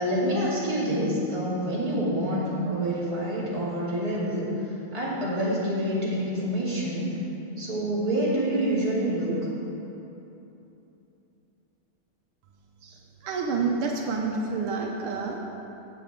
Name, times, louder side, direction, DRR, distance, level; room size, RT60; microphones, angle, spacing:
voice 1, 0.0-4.5 4.9-7.1 7.6-9.4, equal, 15° right, -8 dB, 2.3 m, -27 dB
voice 2, 13.2-15.4, right 4 dB, 75° right, 0 dB, 1.6 m, -28 dB
16.5 x 6.8 x 3.7 m, 3.0 s
omnidirectional pair, 2.4 m